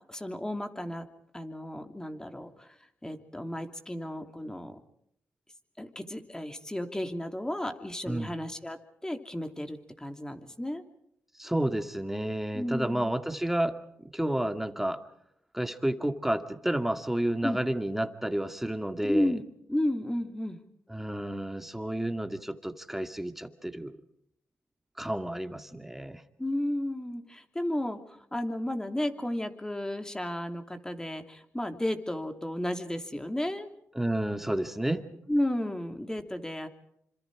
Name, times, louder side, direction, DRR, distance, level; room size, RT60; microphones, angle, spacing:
voice 1, 0.1-1.1 1.3-2.7 3.0-4.8 5.8-10.8 12.5-13.1 17.4-17.6 19.0-19.4 19.7-20.6 26.4-33.7 35.3-36.7, left 1 dB, 10° left, 6 dB, 3.0 m, -33 dB
voice 2, 11.4-13.8 14.0-15.0 15.5-19.4 20.9-24.0 25.0-26.2 34.0-35.0, right 1 dB, 5° right, 7 dB, 2.2 m, -31 dB
27.5 x 26.0 x 4.9 m, 0.74 s
cardioid pair, 60°, 5 cm